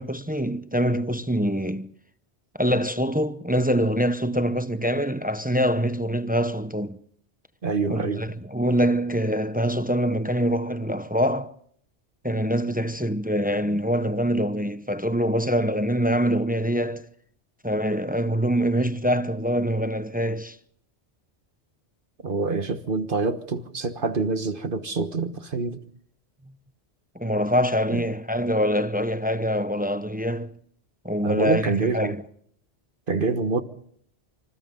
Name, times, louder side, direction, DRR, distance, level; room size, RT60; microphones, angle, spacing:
voice 1, 0.0-1.9 2.6-7.0 7.9-11.5 12.2-17.1 17.6-20.6 27.1-30.5 31.0-32.2, equal, 10° right, 0.7 m, -24 dB
voice 2, 7.6-8.2 22.2-25.8 27.9-28.0 31.2-32.2 33.1-33.6, right 4 dB, 55° right, 1.5 m, -26 dB
26.0 x 26.0 x 3.8 m
omnidirectional pair, 1.1 m